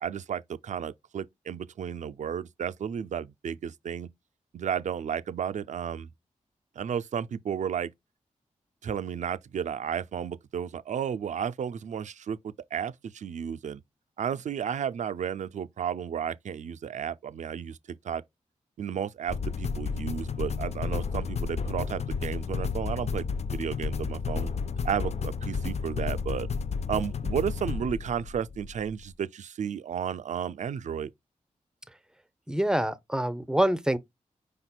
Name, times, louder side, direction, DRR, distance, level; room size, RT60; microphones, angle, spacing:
voice 1, 0.0-4.1 4.5-6.1 6.8-7.9 8.8-13.8 14.2-18.2 18.8-24.5 24.8-26.5 26.9-31.1, right 8 dB, 65° right, 0.4 m, -33 dB
sound 1, 19.3-28.9, left 5 dB, 55° left, 0.4 m, -32 dB
voice 2, 32.5-34.0, right 1 dB, 5° right, 0.6 m, -26 dB
5.1 x 4.2 x 2.2 m
cardioid pair, 45°, 14 cm